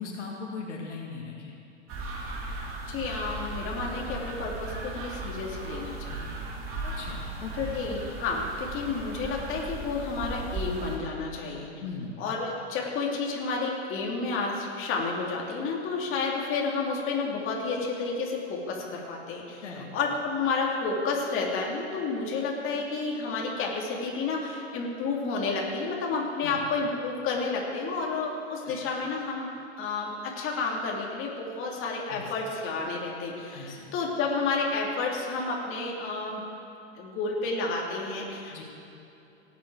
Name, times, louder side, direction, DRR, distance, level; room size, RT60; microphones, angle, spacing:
voice 1, 0.0-1.5 6.8-7.7 11.8-12.1 19.6-19.9 26.4-26.6 28.6-28.8 32.1-32.2 33.5-33.9 38.5-38.6, left 4 dB, 80° left, -1 dB, 2.1 m, -39 dB
sound 1, 1.9-11.0, right 2 dB, 40° right, 2.6 m, -37 dB
voice 2, 2.9-6.3 7.6-11.7 12.2-29.5 29.8-36.4 37.0-38.6, left 4 dB, 35° left, -2 dB, 2.5 m, -31 dB
18.0 x 8.4 x 4.7 m, 2.8 s
hypercardioid pair, 105°, 35 cm